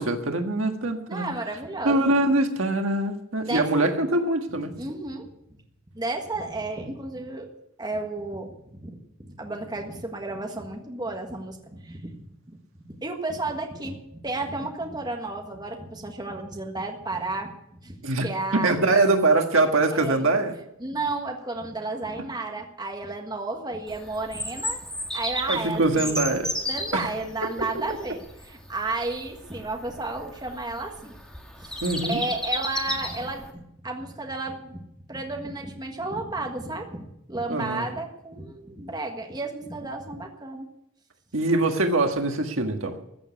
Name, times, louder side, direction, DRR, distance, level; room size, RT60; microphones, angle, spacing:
voice 1, 0.0-1.3 1.8-4.7 18.0-18.3 18.6-20.5 25.5-26.5 26.9-27.0 31.8-32.2 37.5-37.8 41.3-43.0, right 2 dB, 70° right, 4 dB, 1.6 m, -23 dB
voice 2, 1.1-2.1 3.4-3.9 4.8-5.3 5.9-7.5 7.8-12.6 12.9-17.5 17.8-17.9 18.2-18.8 19.9-20.2 20.8-24.8 25.1-26.2 26.6-31.1 31.6-31.8 32.0-34.8 35.1-40.7, right 2 dB, 20° right, 2 dB, 1.6 m, -32 dB
Bird vocalization bird call bird song, 23.9-33.5, equal, 5° left, 1.6 m, -34 dB
14.5 x 7.2 x 9.5 m, 0.81 s
head